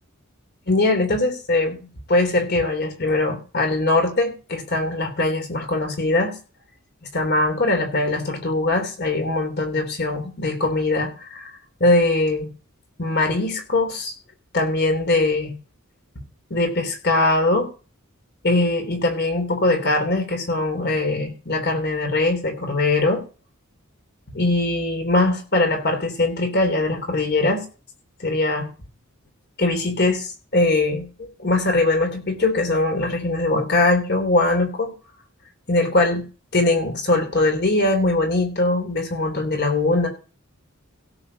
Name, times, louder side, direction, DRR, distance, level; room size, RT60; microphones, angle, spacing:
voice 1, 0.7-6.4 7.1-12.5 13.0-14.1 14.5-15.5 16.5-17.7 18.4-23.2 24.3-27.6 28.2-28.7 29.6-34.9 35.7-36.2 36.5-40.1, left 2 dB, 50° left, 4 dB, 3.5 m, -21 dB
16.5 x 6.9 x 4.2 m, 0.35 s
head